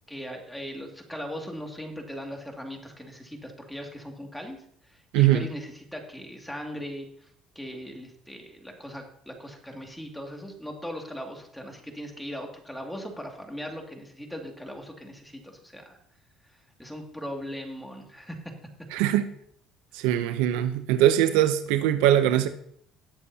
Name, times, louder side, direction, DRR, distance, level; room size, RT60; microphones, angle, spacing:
voice 1, 0.1-4.6 4.9-7.3 7.6-16.0 16.8-18.4, equal, 5° left, 2.3 m, -39 dB
voice 2, 18.9-19.3 20.0-22.5, right 12 dB, 90° right, 0.6 m, -21 dB
18.5 x 7.1 x 2.8 m
supercardioid pair, 95°, 0 cm